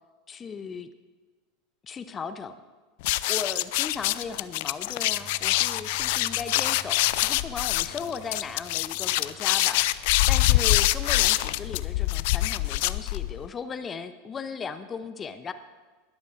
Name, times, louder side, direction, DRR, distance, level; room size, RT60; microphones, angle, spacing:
voice 1, 0.3-0.9 1.8-2.6 3.3-9.9 10.3-15.5, left 5 dB, 25° left, 11 dB, 0.7 m, -37 dB
sound 1, 3.0-13.5, left 18 dB, 60° left, 0.4 m, -25 dB
sound 2, 5.1-13.2, right 3 dB, 35° right, 2.6 m, -52 dB
20.5 x 13.5 x 2.6 m, 1.4 s
figure-of-eight pair, 85°, 0 cm